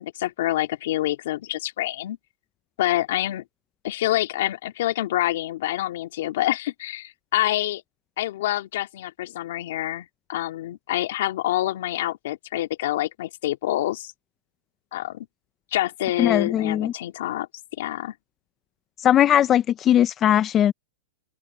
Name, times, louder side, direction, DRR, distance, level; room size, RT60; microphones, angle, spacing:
voice 1, 0.0-2.2 2.8-3.4 3.8-7.8 8.2-14.1 14.9-15.3 15.7-17.5 17.8-18.1, left 14 dB, 70° left, 2.2 m, -27 dB
voice 2, 16.2-16.9 19.0-20.7, left 11 dB, 30° left, 0.6 m, -19 dB
open air
hypercardioid pair, 125°, 0 cm